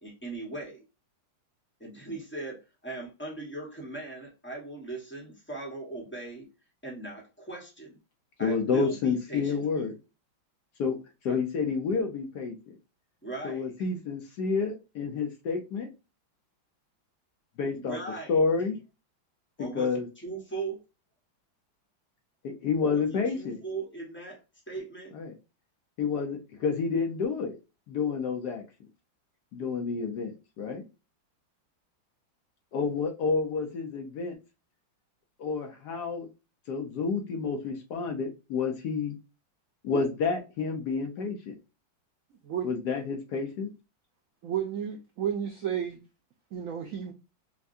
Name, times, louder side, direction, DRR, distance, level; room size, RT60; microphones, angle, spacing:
voice 1, 0.0-0.8 1.8-6.5 6.8-8.0 8.4-9.8 11.3-11.4 13.2-13.7 17.7-18.3 19.6-20.8 22.9-24.4 24.7-25.1, right 3 dB, 10° left, 0.9 m, -39 dB
voice 2, 8.4-9.9 10.8-11.0 11.2-12.7 13.4-15.9 17.6-18.0 18.3-18.8 19.6-20.0 22.4-23.6 25.2-25.3 26.0-27.6 27.9-28.6 29.5-30.8 32.7-34.4 35.4-36.3 36.7-39.1 39.8-41.5 42.6-43.7, left 5 dB, 65° left, 1.2 m, -29 dB
voice 3, 44.4-46.0 46.5-47.1, right 9 dB, 80° right, 0.7 m, -32 dB
5.8 x 2.3 x 2.6 m
omnidirectional pair, 2.2 m